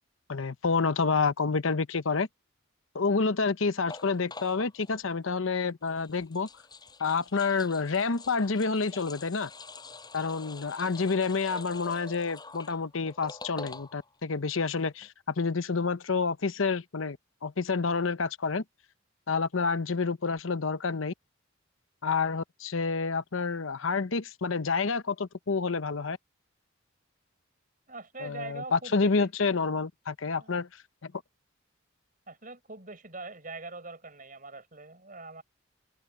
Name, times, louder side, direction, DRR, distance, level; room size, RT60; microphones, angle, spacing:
voice 1, 0.3-2.3 2.9-6.5 7.0-9.5 10.1-17.2 17.4-18.6 19.3-21.1 22.0-26.2 28.2-30.7 31.0-31.1, left 4 dB, 75° left, 0.8 m, -28 dB
sound 1, 3.9-5.0 5.9-14.2 14.5-14.6 14.8-15.1, left 3 dB, 20° left, 5.6 m, -46 dB
voice 2, 27.9-29.3 30.4-30.6 32.3-35.4, right 3 dB, 40° right, 4.7 m, -43 dB
open air
head